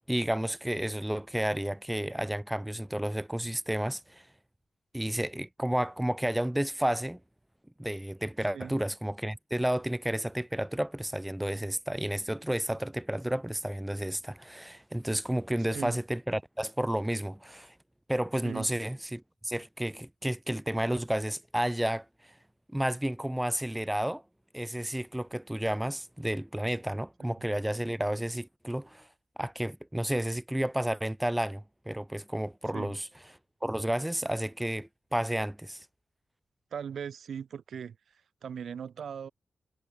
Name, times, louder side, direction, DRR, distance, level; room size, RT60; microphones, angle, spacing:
voice 1, 0.1-4.3 4.9-7.2 7.8-17.7 18.1-22.3 22.7-24.2 24.5-29.1 29.4-33.1 33.6-35.8, right 1 dB, 5° right, 3.1 m, -31 dB
voice 2, 36.7-39.3, right 7 dB, 70° right, 4.8 m, -39 dB
wide cardioid pair, 140°, 0 cm